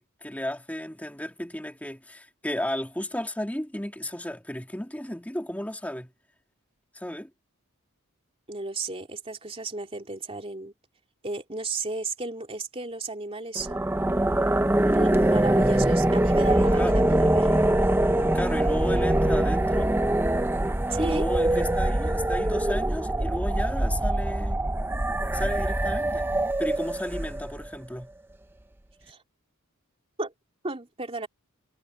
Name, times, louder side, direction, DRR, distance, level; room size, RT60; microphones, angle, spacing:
voice 1, 0.0-6.1 6.9-7.3 16.8-17.0 18.3-19.9 21.0-24.6 25.3-26.3 26.6-28.1, left 1 dB, 5° left, 2.4 m, -33 dB
voice 2, 8.5-10.7 11.2-13.8 14.8-17.7 20.9-21.3 29.1-29.2 30.2-30.3 30.6-31.3, right 3 dB, 25° right, 3.0 m, -33 dB
sound 1, 13.6-27.7, right 1 dB, 10° right, 0.5 m, -23 dB
head